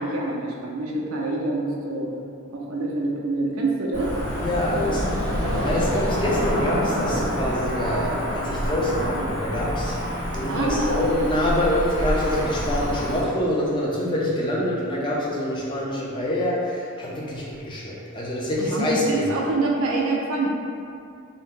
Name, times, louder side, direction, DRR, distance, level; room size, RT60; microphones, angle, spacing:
voice 1, 0.0-2.2 2.5-4.1 4.7-5.0 10.5-11.1 18.6-20.5, right 2 dB, 70° right, -2 dB, 0.4 m, -26 dB
Cricket / Motor vehicle (road), 3.9-13.2, equal, 40° left, 1.2 m, -27 dB
voice 2, 4.3-5.0 5.6-10.0 10.3-19.3, left 1 dB, 25° left, -5 dB, 0.5 m, -25 dB
2.7 x 2.0 x 3.4 m, 2.4 s
head